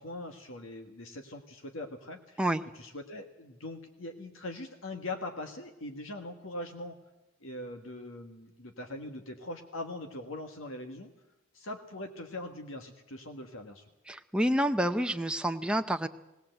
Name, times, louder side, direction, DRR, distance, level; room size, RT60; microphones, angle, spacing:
voice 1, 0.0-2.4 2.7-7.0 7.4-11.1 11.5-13.8, left 2 dB, 65° left, 4 dB, 1.6 m, -41 dB
voice 2, 14.1-16.1, right 1 dB, 5° right, 7 dB, 0.6 m, -28 dB
19.0 x 18.5 x 7.9 m, 0.95 s
head